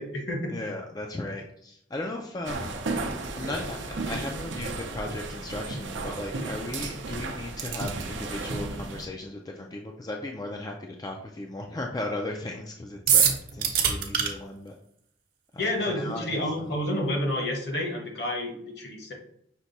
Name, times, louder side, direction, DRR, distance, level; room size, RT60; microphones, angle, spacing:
voice 1, 0.0-0.5 15.6-19.1, left 1 dB, 60° left, 0 dB, 1.2 m, -29 dB
voice 2, 0.5-2.7 3.3-14.7 15.5-16.3, left 2 dB, 20° left, 2 dB, 0.4 m, -36 dB
sound 1, 2.5-9.1, right 3 dB, 85° right, 0.6 m, -34 dB
sound 2, 13.1-14.3, right 7 dB, 55° right, 0.8 m, -21 dB
5.9 x 2.2 x 4.0 m, 0.70 s
head